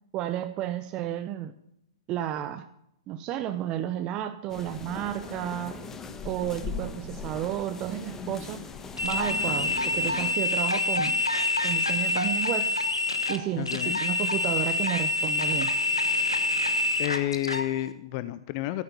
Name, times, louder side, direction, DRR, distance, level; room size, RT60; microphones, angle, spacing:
voice 1, 0.1-1.5 2.1-2.7 3.1-5.8 6.2-8.6 9.0-11.2 11.6-12.8 13.3-15.7, right 12 dB, 30° right, 11 dB, 0.7 m, -32 dB
sound 1, 4.5-10.3, left 4 dB, 15° left, 1.2 m, -39 dB
sound 2, 9.0-17.7, left 2 dB, 90° left, 1.4 m, -26 dB
voice 2, 13.6-14.0 17.0-18.8, left 15 dB, 40° left, 14 dB, 0.6 m, -30 dB
14.5 x 9.0 x 6.8 m, 0.78 s
figure-of-eight pair, 115°, 3 cm